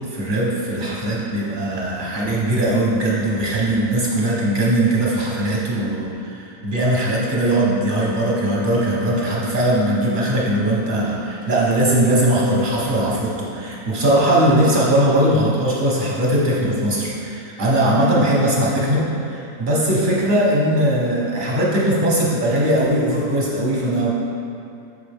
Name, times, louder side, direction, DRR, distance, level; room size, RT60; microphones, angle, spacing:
voice 1, 0.1-24.1, right 1 dB, 35° right, -5 dB, 1.2 m, -20 dB
6.9 x 4.7 x 3.5 m, 2.6 s
omnidirectional pair, 1.5 m